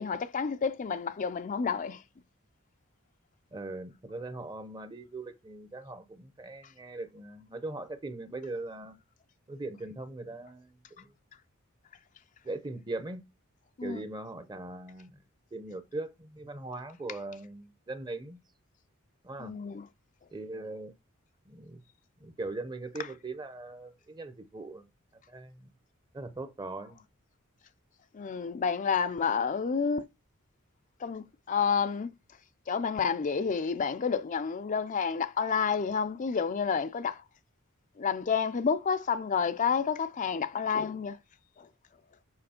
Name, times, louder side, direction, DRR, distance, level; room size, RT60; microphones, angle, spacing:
voice 1, 0.0-2.0 13.8-14.0 19.4-19.8 28.1-30.0 31.0-32.1 32.7-37.2 38.0-41.2, left 6 dB, 35° left, 0.5 m, -29 dB
voice 2, 3.5-8.9 9.5-11.1 12.4-13.2 13.8-15.2 15.5-18.4 19.2-19.6 20.3-20.9 21.5-21.8 22.2-24.8 25.3-25.7 26.1-27.0, right 2 dB, 20° right, 0.8 m, -40 dB
7.7 x 5.0 x 4.3 m
head